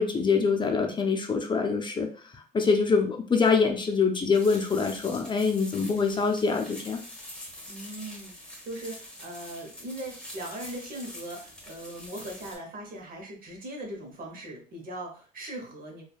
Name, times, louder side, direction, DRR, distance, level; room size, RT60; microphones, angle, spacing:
voice 1, 0.0-2.1 2.3-7.0, left 5 dB, 30° left, 3 dB, 0.5 m, -25 dB
sound 1, 4.3-12.6, left 1 dB, 5° left, 1.1 m, -45 dB
voice 2, 7.7-16.0, right 1 dB, 60° right, 0 dB, 0.9 m, -40 dB
3.1 x 2.3 x 2.3 m, 0.40 s
cardioid pair, 85°, 16 cm